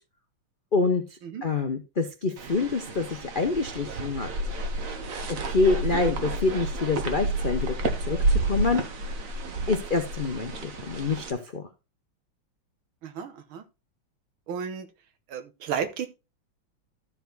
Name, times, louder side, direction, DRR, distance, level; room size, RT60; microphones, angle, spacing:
voice 1, 0.7-1.0 1.4-4.3 5.4-7.8 8.1-8.2 8.4-8.8 9.7-11.6, left 3 dB, 55° left, 6 dB, 0.5 m, -26 dB
sound 1, 2.4-11.3, right 2 dB, 45° right, 1.4 m, -30 dB
voice 2, 13.0-13.6 14.5-14.9 15.3-16.1, right 7 dB, 80° right, 9 dB, 1.9 m, -33 dB
13.0 x 4.8 x 3.9 m, 0.26 s
omnidirectional pair, 2.3 m